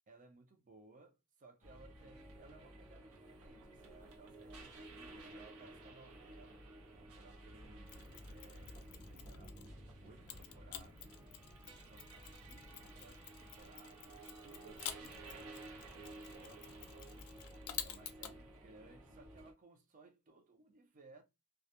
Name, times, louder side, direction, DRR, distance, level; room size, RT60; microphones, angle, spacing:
voice 1, 0.1-6.7 7.1-11.1 11.9-12.2 12.4-17.4 17.8-21.2, right 3 dB, 35° right, 0.5 m, -62 dB
sound 1, 1.6-19.5, right 1 dB, 80° right, 0.7 m, -54 dB
Mechanisms, 7.9-9.8 10.3-18.4, left 10 dB, 90° left, 0.4 m, -50 dB
2.3 x 2.0 x 2.7 m
head